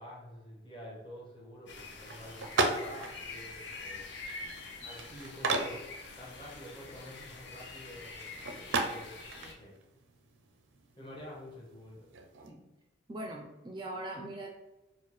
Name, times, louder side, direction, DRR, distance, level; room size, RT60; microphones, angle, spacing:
voice 1, 0.0-4.2 4.8-5.8 6.2-9.7 11.0-12.1, equal, 25° left, -3 dB, 0.9 m, -48 dB
sound 1, 1.7-9.5, left 3 dB, 65° left, 0.6 m, -46 dB
sound 2, 2.0-12.5, right 3 dB, 85° right, 0.5 m, -38 dB
voice 2, 13.1-14.5, right 1 dB, 25° right, 0 dB, 0.3 m, -41 dB
4.4 x 2.1 x 3.0 m, 0.99 s
head